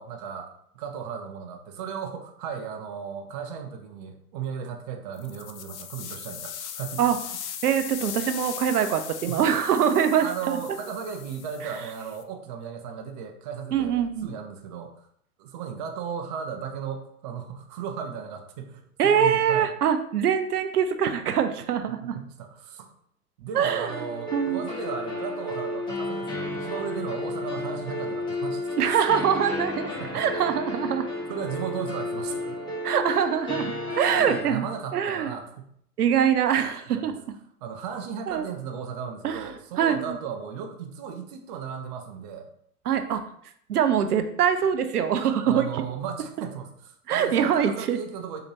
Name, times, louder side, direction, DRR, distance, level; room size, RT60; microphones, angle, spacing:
voice 1, 0.0-7.1 9.3-9.4 10.2-15.1 15.4-19.7 21.9-22.9 23.4-29.0 30.0-30.5 31.3-32.6 33.9-35.7 36.9-37.1 37.6-42.5 45.5-48.4, right 7 dB, 30° right, 4 dB, 0.4 m, -36 dB
sound 1, 5.1-12.2, left 9 dB, 50° left, 0.5 m, -39 dB
voice 2, 7.6-10.6 13.7-14.3 19.0-22.2 23.5-23.9 24.3-24.6 28.8-31.1 32.8-34.6 34.9-35.3 36.0-37.1 38.3-38.5 39.2-39.5 39.8-40.2 42.9-43.2 43.7-45.8 47.1-48.0, right 8 dB, 85° right, 8 dB, 0.6 m, -24 dB
The sad piano, 23.6-34.4, left 2 dB, 10° left, 1.0 m, -32 dB
4.4 x 2.8 x 2.7 m, 0.66 s
hypercardioid pair, 110°, 45 cm